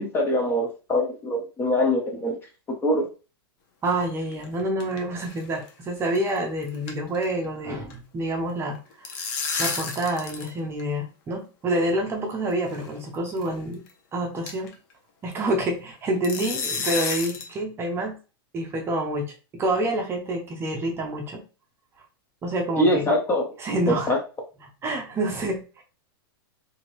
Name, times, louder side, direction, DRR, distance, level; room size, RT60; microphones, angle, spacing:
voice 1, 0.0-2.4 2.7-3.1 22.8-23.4 24.1-24.2, left 1 dB, 15° left, 2 dB, 0.7 m, -23 dB
voice 2, 3.8-8.8 9.6-13.8 14.1-14.7 15.2-18.2 18.5-21.4 22.4-23.1 23.6-24.1 24.8-25.8, right 1 dB, 20° right, 2 dB, 0.7 m, -27 dB
sound 1, 4.2-5.0 5.2-5.4 5.7-5.8 6.2-6.4 6.6-7.9 8.8-10.5 10.8-10.9 11.8-11.9 12.7-12.9 13.4-13.5 13.9-14.0 14.5-14.7 16.2-17.5, left 5 dB, 50° left, 0.8 m, -31 dB
2.8 x 2.6 x 3.0 m, 0.33 s
hypercardioid pair, 140°, 13 cm